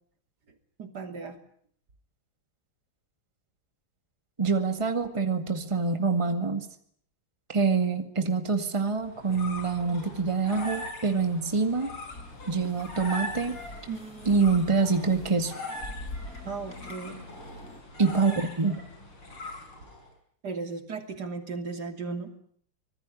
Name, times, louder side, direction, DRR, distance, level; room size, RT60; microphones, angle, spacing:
voice 1, 0.8-1.4 13.9-14.6 16.4-17.2 18.3-18.4 20.4-22.4, right 4 dB, 50° right, 7 dB, 3.4 m, -36 dB
voice 2, 4.4-6.7 7.5-12.0 12.5-13.6 14.3-15.5 18.0-18.8, right 4 dB, 15° right, 7 dB, 2.0 m, -26 dB
sound 1, 8.9-20.1, left 1 dB, 85° left, 6.7 m, -41 dB
sound 2, 12.1-17.8, left 1 dB, 40° left, 3.7 m, -45 dB
25.5 x 19.0 x 10.0 m, 0.63 s
omnidirectional pair, 2.3 m